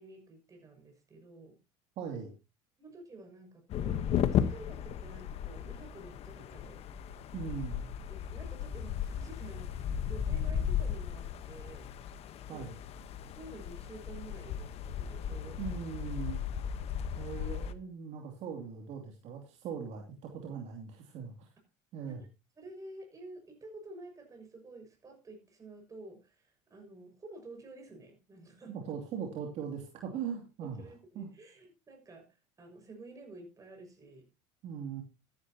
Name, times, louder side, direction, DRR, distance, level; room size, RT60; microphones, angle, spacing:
voice 1, 0.0-1.6 2.8-4.0 4.3-6.8 8.1-11.9 12.5-12.7 13.1-15.8 22.1-22.3 22.6-28.7 30.6-32.3 32.6-34.3, right 2 dB, 25° right, 4 dB, 6.5 m, -50 dB
voice 2, 2.0-2.3 7.3-7.9 12.5-12.8 15.6-16.4 17.2-21.5 21.9-22.2 28.7-30.9 31.1-31.3 34.6-35.0, right 7 dB, 55° right, 2 dB, 2.7 m, -40 dB
sound 1, 3.7-17.7, left 9 dB, 50° left, 1.1 m, -35 dB
13.5 x 11.5 x 2.9 m, 0.27 s
supercardioid pair, 105°, 13 cm